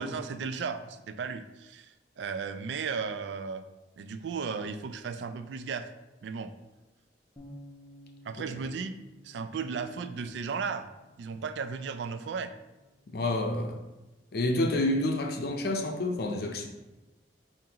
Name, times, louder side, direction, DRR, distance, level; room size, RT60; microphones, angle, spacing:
voice 1, 0.0-3.6 4.0-5.9 6.2-6.5 8.2-8.9 9.2-10.9 11.2-12.5, right 5 dB, 75° right, 0.3 m, -35 dB
Bass guitar, 7.4-13.6, equal, 20° left, 0.6 m, -55 dB
voice 2, 13.1-13.8 14.3-16.7, left 1 dB, 60° left, 0.6 m, -29 dB
7.3 x 2.6 x 2.9 m
head